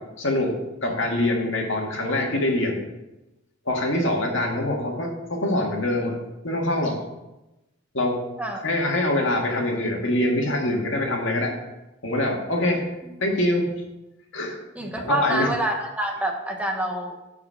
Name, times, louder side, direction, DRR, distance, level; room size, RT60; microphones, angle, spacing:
voice 1, 0.2-0.5 0.8-2.8 3.7-6.2 6.4-7.0 7.9-8.2 8.6-11.5 12.0-12.9 13.2-13.7 14.3-14.6 15.0-15.5, left 1 dB, 70° left, 1 dB, 2.0 m, -24 dB
voice 2, 14.8-17.2, right 1 dB, 5° right, 1 dB, 1.1 m, -27 dB
12.5 x 4.7 x 5.7 m, 0.99 s
head